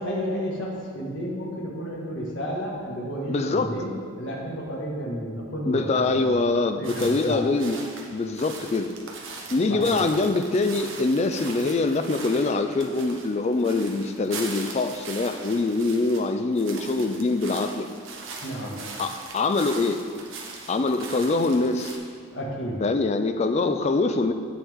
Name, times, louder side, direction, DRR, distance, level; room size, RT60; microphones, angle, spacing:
voice 1, 0.0-6.3 6.8-7.4 9.7-10.0 18.4-18.7 22.3-22.8, equal, 60° left, -4 dB, 1.6 m, -31 dB
voice 2, 3.3-3.7 5.7-7.8 8.1-8.9 9.5-17.9 19.0-20.0 20.7-22.0 22.8-24.3, left 3 dB, 30° left, 8 dB, 0.3 m, -24 dB
sound 1, 6.8-16.2 16.5-22.0, right 4 dB, 70° right, 1.0 m, -40 dB
8.4 x 7.1 x 3.6 m, 2.2 s
head